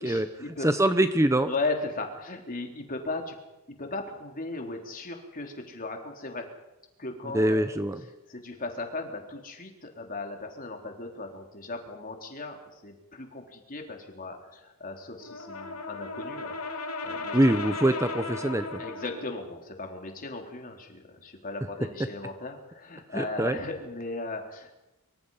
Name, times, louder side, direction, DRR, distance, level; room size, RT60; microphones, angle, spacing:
voice 1, 0.0-0.7 1.5-3.4 3.8-6.5 7.0-7.8 8.3-16.5 17.0-17.4 17.8-17.9 18.8-24.7, left 2 dB, 40° left, 3 dB, 3.8 m, -37 dB
voice 2, 0.6-1.5 7.3-8.0 17.3-18.8 23.1-23.6, right 1 dB, 15° right, 9 dB, 0.9 m, -24 dB
Brass instrument, 15.2-19.4, left 3 dB, 75° left, 3.0 m, -36 dB
25.0 x 24.5 x 5.7 m, 0.96 s
head